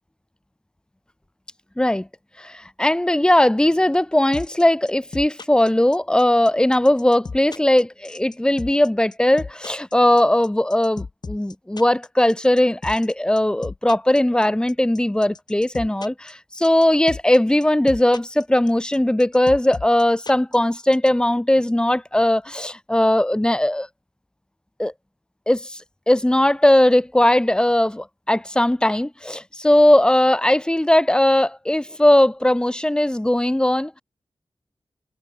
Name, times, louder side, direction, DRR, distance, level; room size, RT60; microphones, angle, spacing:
voice 1, 1.8-2.1 2.4-23.9 24.8-24.9 25.5-25.8 26.1-34.0, left 1 dB, 10° left, 0.8 m, -19 dB
sound 1, 4.3-21.1, left 4 dB, 50° left, 6.8 m, -35 dB
wide cardioid pair, 110°, 9 cm